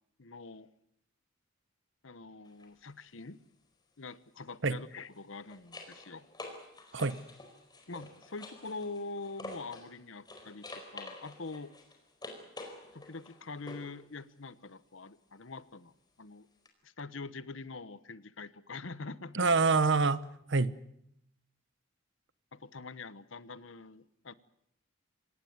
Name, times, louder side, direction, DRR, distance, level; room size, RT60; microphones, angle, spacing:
voice 1, 0.2-0.7 2.0-3.4 4.0-6.3 7.9-11.7 12.9-16.5 16.8-19.5 22.5-24.3, left 3 dB, 65° left, 16 dB, 1.1 m, -44 dB
sound 1, 2.4-2.7 5.0-9.9 10.2-14.0 16.6-16.7, left 2 dB, 20° left, 4.6 m, -48 dB
voice 2, 19.3-20.8, right 4 dB, 60° right, 16 dB, 1.0 m, -26 dB
25.5 x 18.5 x 9.5 m, 0.76 s
head